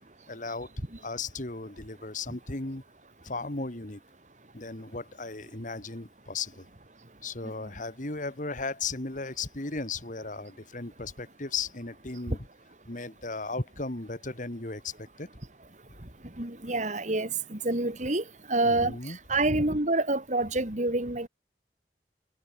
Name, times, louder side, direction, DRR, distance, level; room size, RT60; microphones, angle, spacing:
voice 1, 0.3-0.7 1.0-2.8 3.2-4.0 4.5-6.7 7.2-12.5 12.9-15.3 18.6-19.2 19.4-19.6, left 3 dB, 45° left, 2.2 m, -36 dB
voice 2, 16.4-21.3, right 2 dB, 45° right, 2.8 m, -28 dB
head